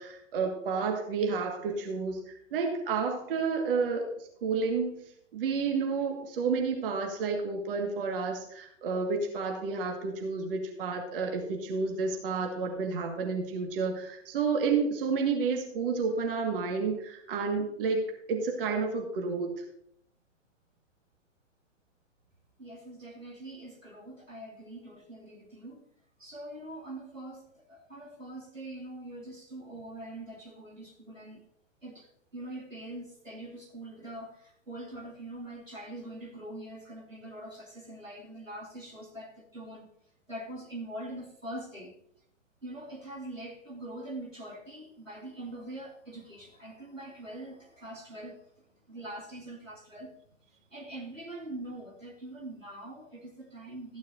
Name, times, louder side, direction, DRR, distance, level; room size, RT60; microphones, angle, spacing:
voice 1, 0.0-5.0 5.3-19.5, right 4 dB, 45° right, 1.7 m, -30 dB
voice 2, 22.6-25.9 26.2-31.4 31.8-32.1 32.3-39.9 40.3-41.9 42.6-48.5 48.9-50.2 50.5-54.0, right 1 dB, 90° right, 2.5 m, -43 dB
14.0 x 10.0 x 2.6 m
figure-of-eight pair, 110°, 38 cm